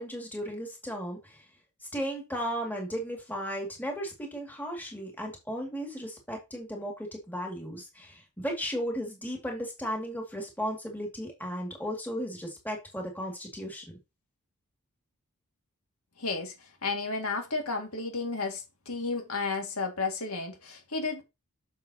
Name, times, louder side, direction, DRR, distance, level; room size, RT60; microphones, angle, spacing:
voice 1, 0.0-1.5 1.9-14.0, equal, 10° left, 2.2 m, -35 dB
voice 2, 16.2-21.2, left 3 dB, 75° left, 2.1 m, -32 dB
7.3 x 6.8 x 2.9 m
head